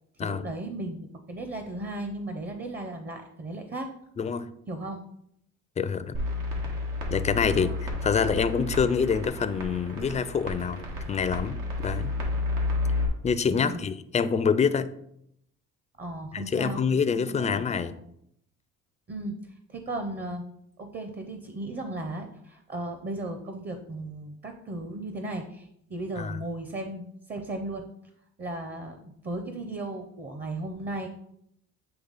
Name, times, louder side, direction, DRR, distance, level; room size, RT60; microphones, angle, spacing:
voice 1, 0.2-3.9 4.7-5.0 6.5-6.8 7.5-7.8 13.5-13.9 16.0-16.8 17.1-17.9 19.1-19.4 19.7-20.4 20.8-27.9 28.4-31.1, right 2 dB, 30° right, 6 dB, 0.7 m, -36 dB
voice 2, 5.8-6.2 7.1-12.1 13.2-14.9 16.3-17.9 26.2-26.4, left 6 dB, 20° left, 12 dB, 0.4 m, -26 dB
sound 1, 6.1-13.1, left 2 dB, 90° right, 1.5 m, -31 dB
7.9 x 3.2 x 4.0 m, 0.74 s
cardioid pair, 100°, 32 cm